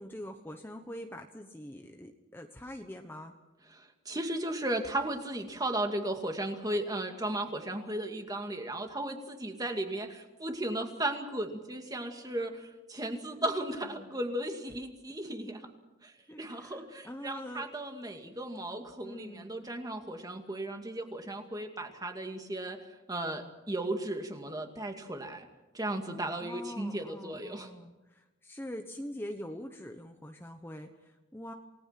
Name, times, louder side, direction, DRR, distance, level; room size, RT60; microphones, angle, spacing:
voice 1, 0.0-3.3 13.4-14.1 16.3-17.6 19.0-19.5 26.4-31.5, left 1 dB, 10° left, 4 dB, 1.1 m, -44 dB
voice 2, 3.7-15.6 16.0-25.5 25.7-27.7, right 1 dB, 20° right, 5 dB, 2.3 m, -35 dB
28.5 x 19.0 x 5.9 m, 1.0 s
head